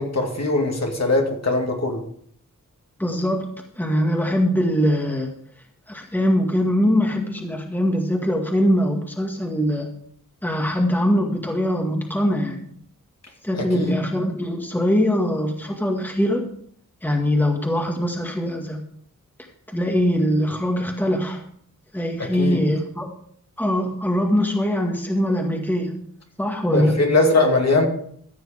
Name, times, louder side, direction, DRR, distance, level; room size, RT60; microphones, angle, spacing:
voice 1, 0.0-2.0 13.5-13.9 22.2-22.6 26.7-27.8, left 2 dB, 55° left, 1 dB, 2.4 m, -21 dB
voice 2, 3.0-3.5 3.8-5.3 5.9-9.9 10.4-12.6 13.4-16.5 17.0-18.8 19.7-21.4 21.9-23.1 23.6-26.0 26.4-26.9, equal, 5° left, 2 dB, 2.0 m, -22 dB
14.5 x 6.6 x 5.0 m, 0.63 s
wide cardioid pair, 75°, 32 cm